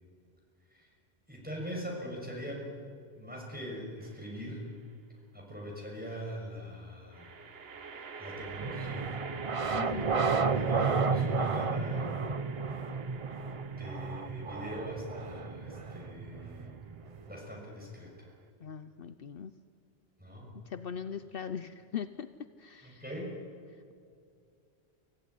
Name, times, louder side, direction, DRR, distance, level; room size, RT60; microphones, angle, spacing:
voice 1, 1.3-2.7 3.1-4.7 5.3-7.3 7.9-9.1 10.4-12.1 13.8-16.8 17.3-18.3 20.2-20.5 22.8-23.4, equal, 10° right, -2 dB, 6.2 m, -42 dB
sound 1, 4.0-4.6 7.1-18.5, right 5 dB, 65° right, 1.3 m, -46 dB
sound 2, 8.6-17.4, right 5 dB, 35° right, 0.8 m, -32 dB
voice 2, 9.7-10.2 18.6-19.5 20.7-22.3 22.6-23.0, left 8 dB, 60° left, 11 dB, 0.9 m, -40 dB
25.5 x 15.5 x 9.5 m, 2.4 s
omnidirectional pair, 1.1 m